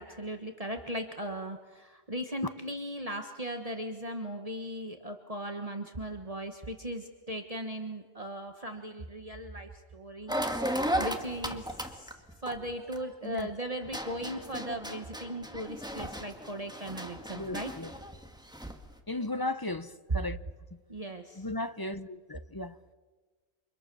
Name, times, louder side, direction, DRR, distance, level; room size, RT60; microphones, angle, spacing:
voice 1, 0.0-11.7 11.9-17.7 19.1-19.4 20.9-21.4, right 1 dB, 35° right, 1.5 m, -38 dB
sound 1, 10.3-13.4 13.8-18.9, equal, 5° right, 2.1 m, -35 dB
voice 2, 17.3-17.9 19.1-20.4 21.4-22.8, left 2 dB, 20° left, 0.8 m, -35 dB
29.5 x 27.0 x 7.0 m
omnidirectional pair, 1.1 m